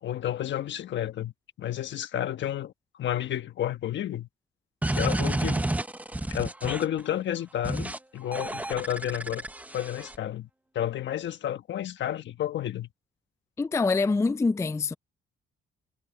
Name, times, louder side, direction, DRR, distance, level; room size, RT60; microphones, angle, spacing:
voice 1, 0.0-4.3 4.9-5.7 6.3-9.4 9.7-10.5 10.7-12.9, left 11 dB, 65° left, 1.3 m, -31 dB
sound 1, 4.8-7.0 7.6-8.0 8.3-10.2, right 1 dB, 5° right, 0.8 m, -30 dB
voice 2, 13.6-14.9, left 3 dB, 15° left, 0.4 m, -25 dB
cardioid pair, 90°, 20 cm